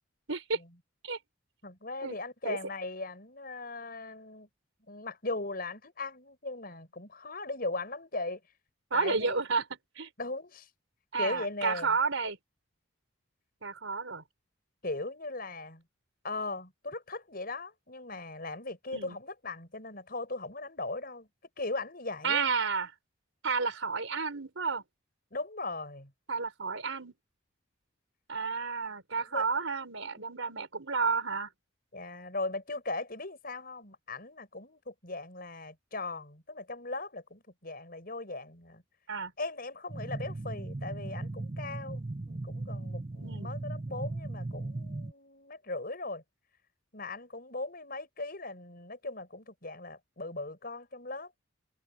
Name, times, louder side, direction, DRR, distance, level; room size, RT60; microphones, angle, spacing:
voice 1, 0.3-0.6 1.0-1.2 2.0-2.2 2.4-2.6 8.9-9.7 10.0-10.1 11.1-12.4 13.6-14.2 18.9-19.2 22.2-22.9 23.4-24.8 26.3-27.1 28.3-31.5 39.1-39.3 43.2-43.5, right 5 dB, 85° right, 4.0 m, -31 dB
voice 2, 1.6-4.5 4.8-8.4 8.9-9.4 10.2-10.7 11.2-12.0 14.8-15.8 16.2-21.3 21.6-22.4 25.3-26.1 29.2-29.5 31.9-38.8 39.4-46.2 46.9-51.3, left 2 dB, 50° left, 6.5 m, -38 dB
sound 1, 39.9-45.1, right 2 dB, 30° right, 0.6 m, -37 dB
head